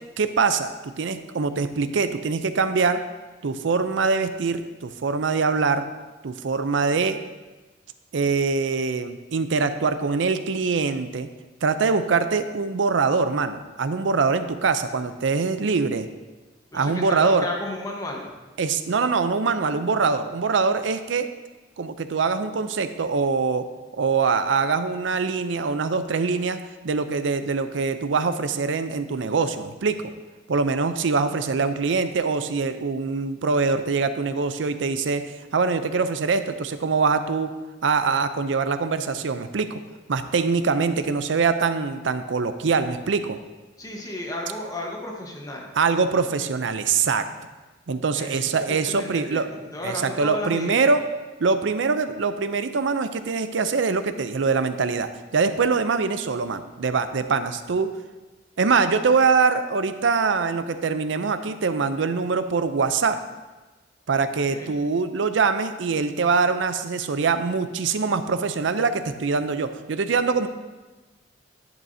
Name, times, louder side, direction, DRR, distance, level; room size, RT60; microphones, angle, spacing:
voice 1, 0.2-3.0 3.4-5.9 6.2-7.2 8.1-11.3 11.6-16.1 16.7-17.5 18.6-21.3 21.8-23.7 23.9-30.0 30.5-35.2 35.5-37.5 37.8-39.8 40.1-43.4 45.8-47.2 47.9-49.5 49.8-51.0 51.4-57.9 58.6-63.2 64.1-70.5, right 4 dB, 75° right, 10 dB, 0.5 m, -23 dB
voice 2, 16.7-18.4 43.8-45.7 48.1-50.9 64.1-64.7, left 1 dB, 20° left, 0 dB, 1.2 m, -34 dB
10.5 x 8.2 x 2.7 m, 1.2 s
head